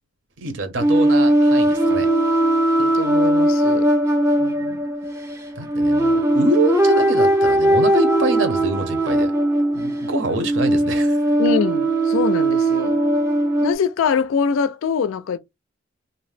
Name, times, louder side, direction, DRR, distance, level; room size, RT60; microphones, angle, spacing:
voice 1, 0.4-2.1 5.6-9.3 9.7-11.2, right 2 dB, 70° right, 0.7 m, -25 dB
sound 1, 0.8-13.7, right 1 dB, 15° right, 0.4 m, -19 dB
voice 2, 2.8-3.9 4.4-4.8 11.4-13.0 13.6-15.4, left 6 dB, 85° left, 0.3 m, -24 dB
2.6 x 2.0 x 3.2 m
head